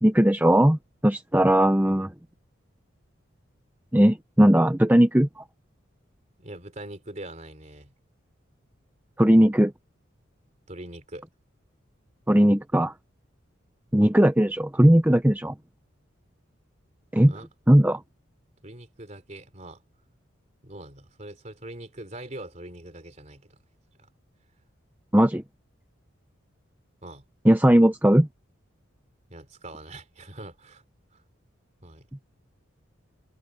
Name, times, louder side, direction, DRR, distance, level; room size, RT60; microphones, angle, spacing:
voice 1, 0.0-2.1 3.9-5.4 9.2-9.7 12.3-12.9 13.9-15.5 17.1-17.3 17.7-18.0 25.1-25.4 27.4-28.3, equal, 10° right, 0.7 m, -18 dB
voice 2, 6.4-7.9 10.7-11.3 17.3-17.5 18.6-19.8 20.6-23.6 24.0-24.1 27.0-27.2 29.3-30.8 31.1-31.2 31.8-32.1, right 1 dB, 35° right, 3.6 m, -42 dB
head